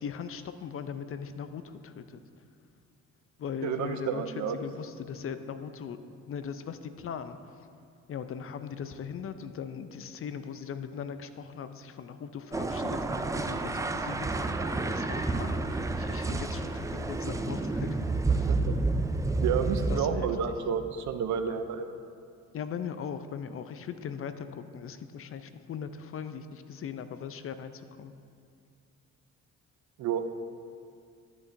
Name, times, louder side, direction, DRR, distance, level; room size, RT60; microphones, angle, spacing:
voice 1, 0.0-2.2 3.4-6.0 6.3-7.4 8.1-18.5 19.9-20.3 22.5-28.1, left 7 dB, 45° left, 10 dB, 0.5 m, -39 dB
voice 2, 3.6-4.6 18.3-18.8 19.4-21.9 30.0-30.3, right 7 dB, 70° right, 9 dB, 0.6 m, -30 dB
sound 1, 12.5-20.0, right 3 dB, 10° right, 0.3 m, -30 dB
12.5 x 7.0 x 2.6 m, 2.3 s
cardioid pair, 90°, 30 cm